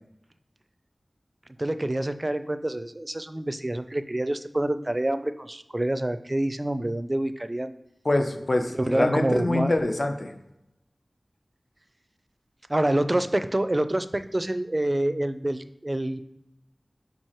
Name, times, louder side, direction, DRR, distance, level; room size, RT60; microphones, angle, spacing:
voice 1, 1.6-7.7 8.8-9.7 12.7-16.2, right 1 dB, 30° right, 11 dB, 0.4 m, -27 dB
voice 2, 8.0-10.3, left 2 dB, 50° left, 6 dB, 0.7 m, -25 dB
5.0 x 4.7 x 4.4 m, 0.91 s
wide cardioid pair, 50°, 0 cm